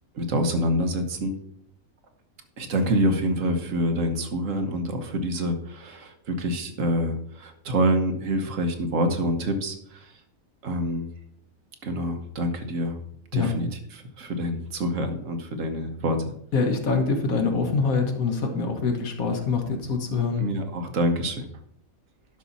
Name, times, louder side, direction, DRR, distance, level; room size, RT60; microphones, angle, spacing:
voice 1, 0.1-1.3 2.6-10.1 10.6-11.1 11.8-13.0 13.3-16.2 20.4-21.5, equal, 65° right, 6 dB, 1.4 m, -26 dB
voice 2, 16.5-20.5, left 4 dB, 80° left, 4 dB, 1.8 m, -25 dB
11.5 x 5.7 x 4.1 m, 0.71 s
omnidirectional pair, 1.5 m